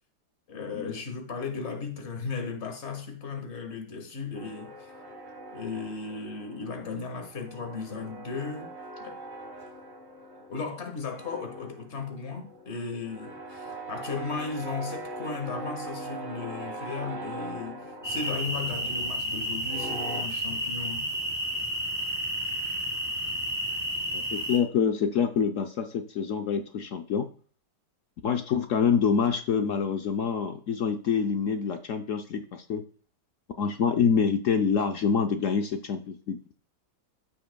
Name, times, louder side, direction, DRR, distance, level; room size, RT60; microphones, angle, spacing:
voice 1, 0.5-4.7 5.5-8.7 9.0-9.2 10.5-21.1, left 4 dB, 40° left, 1.6 m, -36 dB
sound 1, 4.4-6.9 7.2-10.8 11.1-20.2, right 2 dB, 30° right, 1.5 m, -41 dB
sound 2, 18.0-24.6, equal, 10° left, 1.4 m, -31 dB
voice 2, 24.1-27.3 28.2-32.8 33.6-36.4, left 6 dB, 70° left, 0.7 m, -26 dB
14.5 x 5.8 x 2.2 m
omnidirectional pair, 1.9 m